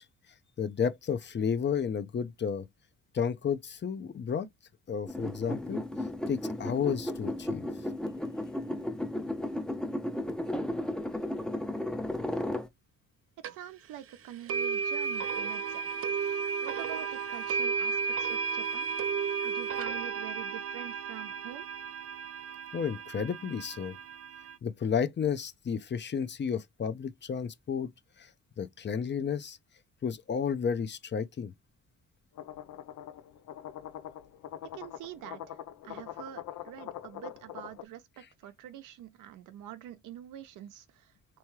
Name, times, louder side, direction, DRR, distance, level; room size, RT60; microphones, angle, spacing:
voice 1, 0.6-2.7 3.1-4.5 4.9-5.8 6.3-7.7 22.7-24.0 24.6-27.9 28.2-28.3 28.6-29.6 30.0-31.5, left 7 dB, 35° left, 0.7 m, -32 dB
sound 1, 5.1-12.7, left 1 dB, ahead, 0.6 m, -34 dB
sound 2, 13.4-13.5 14.5-24.6, right 5 dB, 50° right, 0.6 m, -33 dB
voice 2, 13.5-21.7 34.7-35.6 35.8-41.1, right 12 dB, 90° right, 0.7 m, -46 dB
sound 3, 32.4-37.8, left 11 dB, 70° left, 0.6 m, -43 dB
3.5 x 3.0 x 3.1 m
cardioid pair, 90°, 30 cm